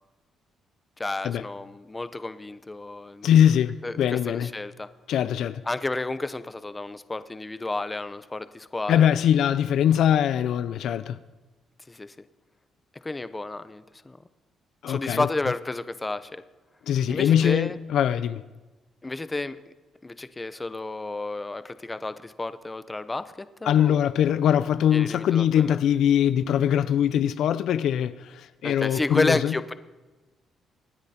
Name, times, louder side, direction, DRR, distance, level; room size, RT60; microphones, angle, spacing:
voice 1, 1.0-3.3 3.8-4.9 5.6-9.1 11.9-12.1 13.0-14.2 14.9-16.4 17.1-17.8 19.0-19.6 20.0-24.0 24.9-25.8 28.6-29.7, left 2 dB, 20° left, 0.8 m, -31 dB
voice 2, 3.2-4.5 5.1-5.6 8.9-11.2 14.8-15.3 16.9-18.4 23.7-29.5, left 10 dB, 75° left, 0.5 m, -22 dB
24.5 x 9.7 x 4.4 m
cardioid pair, 90°, 0 cm